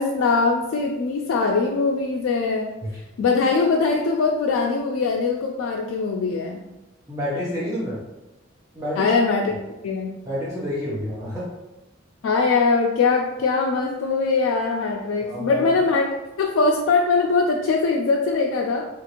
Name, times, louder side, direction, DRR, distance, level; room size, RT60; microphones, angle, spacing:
voice 1, 0.0-2.8 3.2-6.6 9.0-9.5 9.8-10.1 12.2-16.0 16.4-18.9, left 4 dB, 80° left, 0 dB, 0.3 m, -21 dB
voice 2, 7.1-8.0 8.7-9.1 10.2-11.5 15.2-15.7, equal, 15° right, -9 dB, 0.6 m, -28 dB
2.9 x 2.5 x 2.9 m, 0.98 s
head